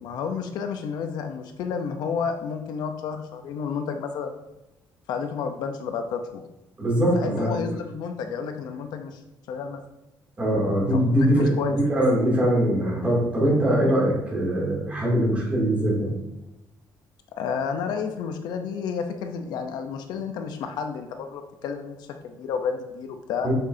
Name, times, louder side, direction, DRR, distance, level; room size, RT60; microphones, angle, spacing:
voice 1, 0.0-4.4 5.1-6.4 7.1-9.2 9.5-9.8 10.9-11.8 17.4-23.5, left 6 dB, 80° left, 6 dB, 0.8 m, -31 dB
voice 2, 6.8-7.7 10.4-11.5 11.9-16.1 23.4-23.5, right 1 dB, 20° right, -5 dB, 2.7 m, -22 dB
8.0 x 6.2 x 2.8 m, 0.92 s
cardioid pair, 180°, 7 cm